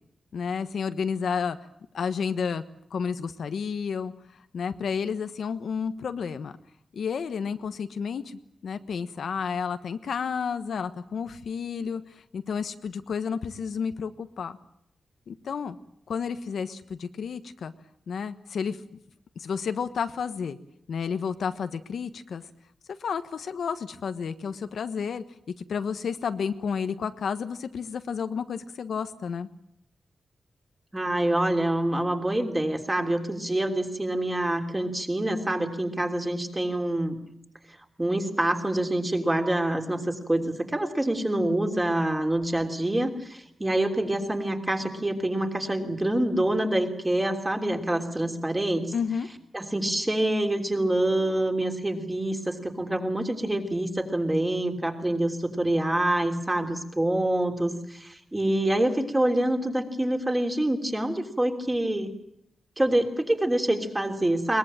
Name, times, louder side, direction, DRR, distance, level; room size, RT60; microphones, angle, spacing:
voice 1, 0.3-1.6 1.9-2.6 2.9-4.1 4.5-6.5 6.9-14.6 15.3-15.8 16.1-17.7 18.1-18.8 19.3-20.6 20.9-22.4 23.0-25.2 25.7-29.5 48.9-49.3, left 6 dB, 75° left, 10 dB, 1.3 m, -31 dB
voice 2, 30.9-37.2 38.0-48.9 49.5-62.1 62.8-64.6, right 1 dB, 15° right, 4 dB, 3.2 m, -26 dB
22.5 x 21.0 x 9.0 m, 0.74 s
wide cardioid pair, 130°, 0 cm